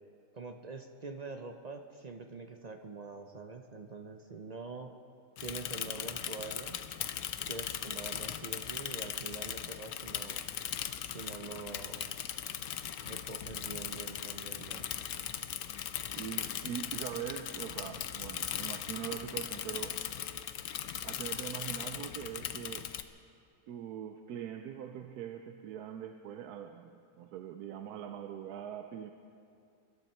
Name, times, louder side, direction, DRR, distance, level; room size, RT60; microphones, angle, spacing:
voice 1, 0.3-4.9 5.4-6.8 7.5-10.4 11.1-12.2 13.0-14.9, right 3 dB, 50° right, 5 dB, 0.5 m, -45 dB
Bicycle / Mechanisms, 5.4-23.0, left 10 dB, 75° left, 1.1 m, -39 dB
voice 2, 16.2-20.0 21.0-22.9 23.7-29.1, right 9 dB, 90° right, 7 dB, 1.2 m, -42 dB
24.5 x 12.0 x 4.4 m, 2.5 s
omnidirectional pair, 1.6 m